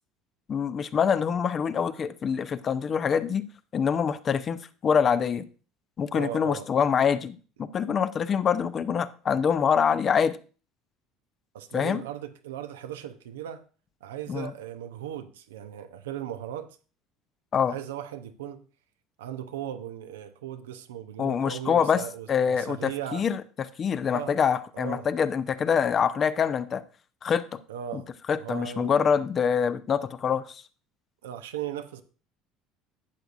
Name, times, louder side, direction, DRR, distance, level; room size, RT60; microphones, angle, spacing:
voice 1, 0.5-3.4 3.7-5.4 6.0-10.4 11.7-12.0 14.3-14.5 17.5-17.7 21.2-22.0 22.3-23.4 23.8-26.8 27.2-27.6 27.9-28.0 28.3-30.6, left 7 dB, 40° left, 0.6 m, -25 dB
voice 2, 6.1-6.7 11.5-13.6 14.0-16.8 17.6-18.7 19.2-23.3 24.1-24.4 24.7-25.1 27.7-28.1 28.4-29.0 31.2-32.0, right 10 dB, 85° right, 0.7 m, -37 dB
12.0 x 7.9 x 2.5 m
hypercardioid pair, 80°, 0 cm